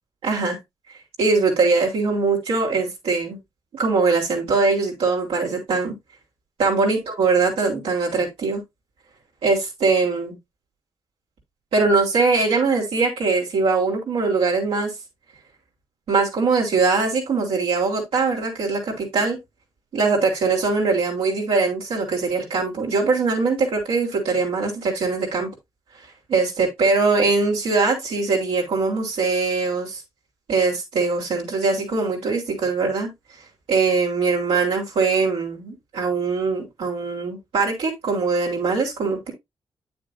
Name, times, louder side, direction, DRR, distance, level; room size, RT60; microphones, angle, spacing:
voice 1, 0.2-0.6 1.2-3.4 3.7-5.9 6.6-8.6 9.4-10.4 11.7-14.9 16.1-19.4 19.9-25.5 26.3-30.0 30.5-33.1 33.7-39.3, right 4 dB, 85° right, 4.1 m, -22 dB
9.2 x 7.7 x 2.7 m
supercardioid pair, 40°, 10 cm